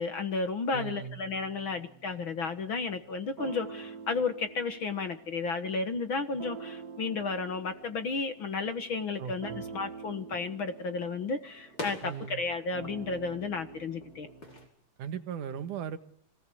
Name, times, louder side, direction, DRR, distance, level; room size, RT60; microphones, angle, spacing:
voice 1, 0.0-14.3, left 4 dB, 50° left, 9 dB, 1.9 m, -33 dB
voice 2, 0.7-1.2 9.2-9.6 12.0-12.4 15.0-16.0, right 8 dB, 85° right, 9 dB, 3.1 m, -38 dB
sound 1, 1.2-14.7, right 6 dB, 50° right, 1.1 m, -47 dB
sound 2, 7.5-14.7, left 2 dB, 35° left, 5.9 m, -49 dB
25.5 x 18.5 x 8.6 m, 0.66 s
omnidirectional pair, 3.5 m